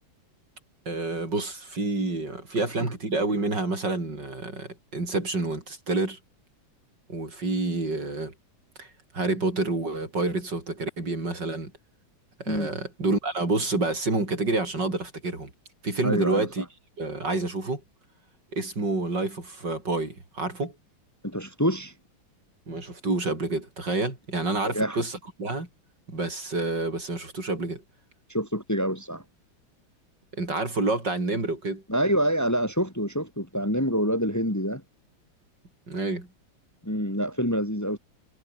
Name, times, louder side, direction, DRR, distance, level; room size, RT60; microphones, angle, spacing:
voice 1, 0.9-6.2 7.1-8.3 8.8-8.9 9.1-11.7 12.4-15.5 15.8-16.6 17.0-17.8 18.5-20.7 22.7-25.7 26.1-27.8 30.4-31.8 35.9-36.3, right 2 dB, 60° right, 6.3 m, -28 dB
voice 2, 16.0-16.5 21.2-21.9 24.6-25.0 28.3-29.2 31.9-34.8 36.8-38.0, equal, 10° left, 3.2 m, -26 dB
omnidirectional pair, 2.1 m